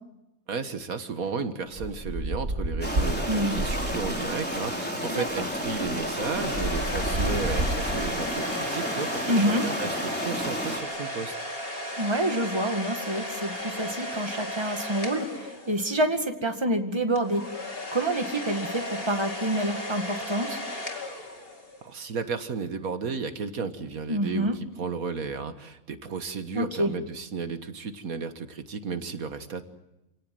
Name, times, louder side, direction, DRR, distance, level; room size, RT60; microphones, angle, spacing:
voice 1, 0.5-11.3 21.8-24.5 24.8-29.7, right 5 dB, 80° right, 9 dB, 1.9 m, -33 dB
sound 1, 1.7-4.3 5.3-5.4 5.7-8.3, right 1 dB, 45° right, 2.4 m, -31 dB
sound 2, 2.8-10.8, equal, 5° left, 3.9 m, -31 dB
voice 2, 3.3-3.6 5.1-5.5 9.3-9.7 12.0-17.4 17.9-20.6 24.1-24.6 26.5-26.9, right 1 dB, 20° right, 5 dB, 2.0 m, -27 dB
sound 3, 6.0-16.1 17.2-21.9, left 1 dB, 40° left, 2.8 m, -35 dB
28.0 x 18.0 x 7.8 m, 0.93 s
omnidirectional pair, 1.5 m